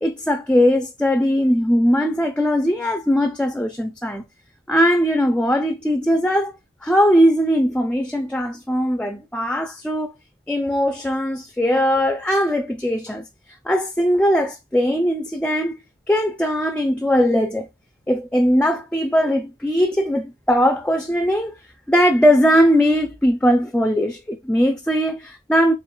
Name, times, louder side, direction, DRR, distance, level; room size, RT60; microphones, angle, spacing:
voice 1, 0.0-4.2 4.7-6.5 6.8-10.1 10.5-13.2 13.7-15.8 16.1-17.7 18.1-21.5 21.9-25.7, equal, 5° left, 0.3 m, -19 dB
4.4 x 3.4 x 2.2 m
head